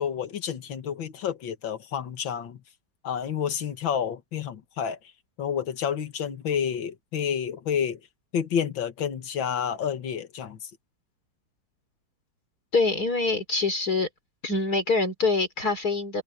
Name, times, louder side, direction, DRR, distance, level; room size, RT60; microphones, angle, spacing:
voice 1, 0.0-2.6 3.0-5.0 5.4-8.0 8.3-10.7, left 8 dB, 85° left, 2.3 m, -29 dB
voice 2, 12.7-14.1 14.4-16.2, left 3 dB, 55° left, 4.0 m, -25 dB
omnidirectional pair, 2.0 m